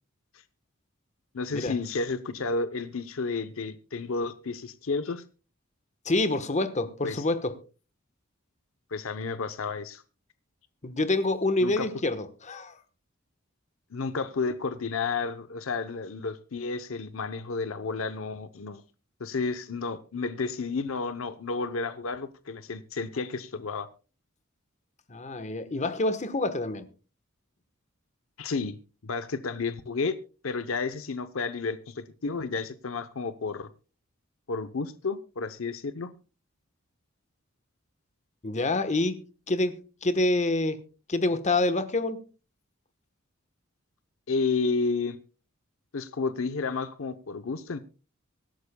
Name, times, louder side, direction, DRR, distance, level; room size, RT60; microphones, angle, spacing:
voice 1, 1.3-5.2 7.0-7.2 8.9-10.0 11.6-11.9 13.9-18.8 19.2-23.9 28.4-30.2 30.4-33.7 34.5-36.1 44.3-45.2 45.9-47.8, left 4 dB, 70° left, 0.7 m, -31 dB
voice 2, 6.0-7.6 10.8-12.8 25.1-26.9 38.4-40.8 41.1-42.2, left 2 dB, 35° left, 1.1 m, -27 dB
24.5 x 11.5 x 2.2 m
head